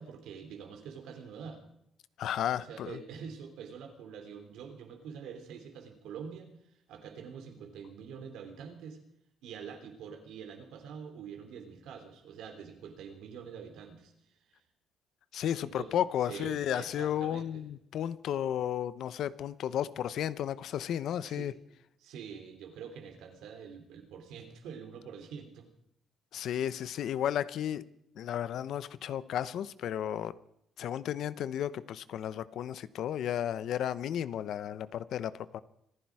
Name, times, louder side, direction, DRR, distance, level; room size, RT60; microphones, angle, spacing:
voice 1, 0.0-1.6 2.5-6.5 6.9-9.0 9.4-14.1 14.5-14.6 15.5-15.9 16.2-17.6 21.2-21.5 22.0-25.7, right 7 dB, 85° right, 5 dB, 3.4 m, -45 dB
voice 2, 2.2-3.0 15.3-21.5 26.3-27.8 28.2-30.3 30.8-35.6, left 10 dB, 75° left, 16 dB, 0.8 m, -33 dB
25.5 x 10.5 x 4.8 m, 0.77 s
cardioid pair, 90°, 0 cm